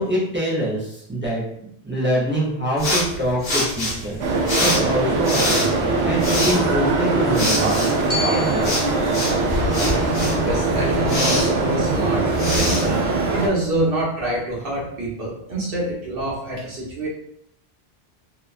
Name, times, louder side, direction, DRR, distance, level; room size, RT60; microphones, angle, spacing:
voice 1, 0.0-1.4 1.8-9.0, equal, 15° right, -6 dB, 0.4 m, -25 dB
sound 1, 2.8-13.7, left 1 dB, 65° left, 1.0 m, -27 dB
sound 2, 4.2-13.5, right 3 dB, 85° right, 0.8 m, -21 dB
Glockenspiel, 8.1-12.2, left 4 dB, 45° left, 0.5 m, -35 dB
voice 2, 10.4-13.0 13.3-17.1, right 1 dB, 60° right, -4 dB, 1.0 m, -26 dB
2.7 x 2.1 x 2.4 m, 0.72 s
omnidirectional pair, 1.1 m